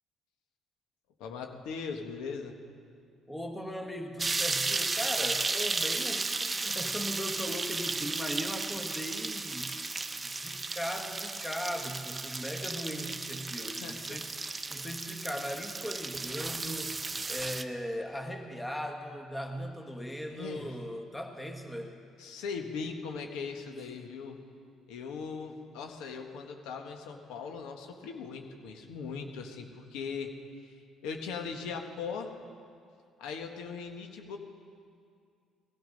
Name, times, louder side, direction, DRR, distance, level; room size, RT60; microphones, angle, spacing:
voice 1, 1.2-2.5 13.6-14.2 20.3-20.7 22.2-24.4 24.9-30.3 30.6-32.3 33.2-34.4, left 5 dB, 85° left, 4 dB, 1.4 m, -39 dB
voice 2, 3.3-17.0 17.3-22.0, equal, 10° left, 3 dB, 1.5 m, -38 dB
sound 1, 4.2-17.6, right 3 dB, 20° right, 0.7 m, -34 dB
17.5 x 13.0 x 5.3 m, 2.3 s
cardioid pair, 100°, 0 cm